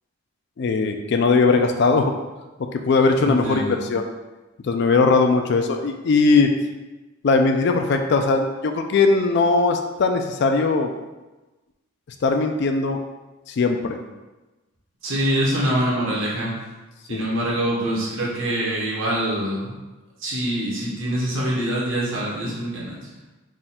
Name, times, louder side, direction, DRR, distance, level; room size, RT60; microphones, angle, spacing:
voice 1, 0.6-2.1 2.6-4.1 4.6-6.5 7.2-10.9 12.2-13.0 13.5-14.0 17.1-17.2, left 4 dB, 55° left, 5 dB, 0.3 m, -19 dB
voice 2, 3.2-3.9 15.0-16.5 17.1-19.7 20.2-23.0, right 1 dB, 65° right, -5 dB, 1.1 m, -24 dB
3.6 x 2.3 x 4.1 m, 1.1 s
head